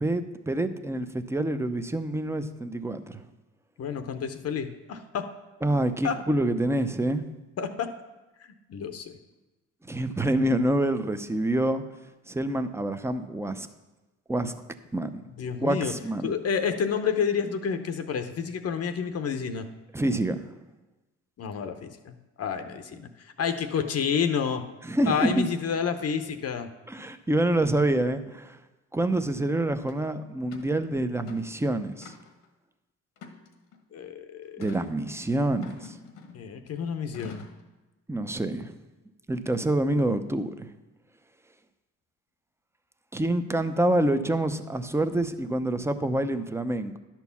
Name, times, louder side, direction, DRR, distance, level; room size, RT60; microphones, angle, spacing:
voice 1, 0.0-3.2 5.6-7.2 9.9-11.8 12.3-13.7 14.3-14.5 14.9-15.2 15.6-16.3 19.9-20.4 24.8-25.4 26.9-28.6 28.9-32.1 34.6-36.0 38.1-38.8 39.3-40.7 43.1-47.0, right 1 dB, 10° right, 10 dB, 0.6 m, -27 dB
voice 2, 3.8-5.3 6.0-6.2 7.6-7.9 8.7-9.2 15.4-15.9 16.2-19.7 21.4-24.6 25.1-26.7 33.9-34.6 36.3-37.5, left 7 dB, 55° left, 8 dB, 0.8 m, -29 dB
sound 1, 29.9-30.0 30.5-30.7 31.2-31.6 32.0-32.5 33.2-33.8 34.6-34.9 35.6-36.5 37.1-37.6, left 4 dB, 85° left, 1.3 m, -45 dB
11.0 x 4.5 x 7.0 m, 1.1 s
cardioid pair, 90°, 30 cm